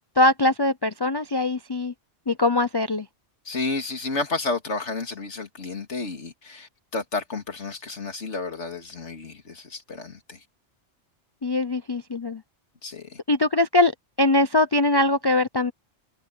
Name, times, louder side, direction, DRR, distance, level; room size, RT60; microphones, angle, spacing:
voice 1, 0.2-1.9 2.3-3.1 11.4-12.4 13.3-13.9 14.2-15.7, left 2 dB, 30° left, 0.5 m, -22 dB
voice 2, 3.5-10.4 12.8-13.2, left 3 dB, 75° left, 2.7 m, -31 dB
omnidirectional pair, 1.2 m